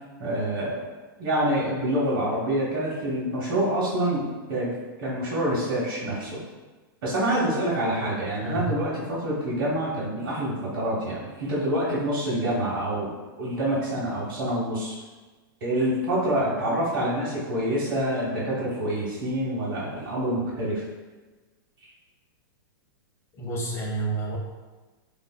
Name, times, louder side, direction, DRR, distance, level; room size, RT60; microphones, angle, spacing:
voice 1, 0.2-0.8 1.2-4.7 5.0-6.4 7.0-13.1 13.4-14.9 15.6-20.8, right 1 dB, 65° right, -6 dB, 1.0 m, -26 dB
voice 2, 8.4-8.7 23.3-24.4, right 2 dB, 20° left, -2 dB, 0.6 m, -29 dB
3.3 x 2.5 x 2.2 m, 1.3 s
hypercardioid pair, 120°, 12 cm